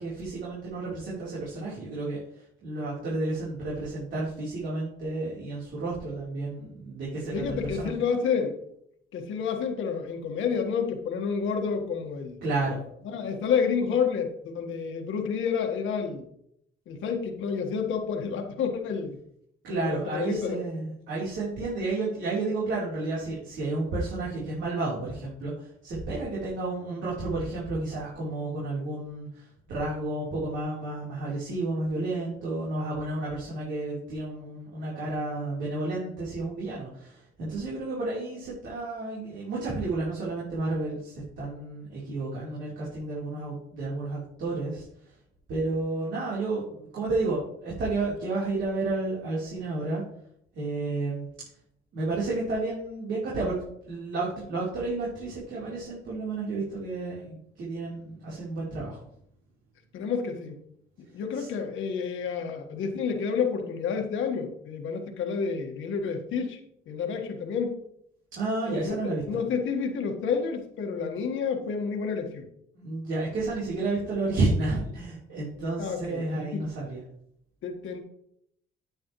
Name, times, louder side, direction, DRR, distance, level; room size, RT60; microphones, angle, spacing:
voice 1, 0.0-7.9 12.4-12.8 19.6-44.8 45.5-50.0 50.6-51.3 51.9-59.0 61.4-61.5 68.3-69.4 72.8-77.0, right 2 dB, 75° right, -7 dB, 3.7 m, -31 dB
voice 2, 7.3-8.6 9.1-12.4 13.0-16.2 16.9-19.1 19.7-20.6 59.9-60.6 61.1-66.6 66.9-67.8 68.7-69.0 69.3-72.5 75.8-76.6 77.6-78.0, left 6 dB, 80° left, 3 dB, 1.6 m, -29 dB
9.4 x 8.8 x 3.1 m, 0.72 s
cardioid pair, 90°, 20 cm